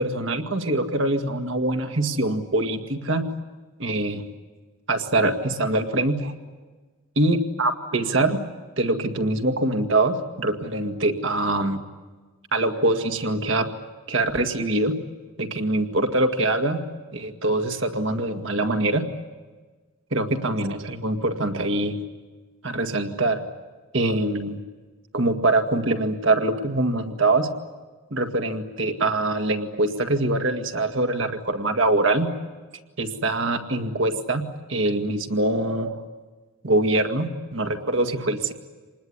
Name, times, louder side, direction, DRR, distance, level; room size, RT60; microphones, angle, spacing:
voice 1, 0.0-3.2 3.8-4.2 4.9-6.3 7.2-8.4 8.8-11.8 12.5-13.7 14.1-14.9 15.4-16.8 17.1-19.1 20.1-22.0 22.6-23.4 23.9-24.6 25.1-27.5 28.1-32.3 33.0-35.9 36.6-38.5, right 2 dB, 60° right, 5 dB, 2.0 m, -23 dB
26.5 x 20.0 x 9.8 m, 1.3 s
head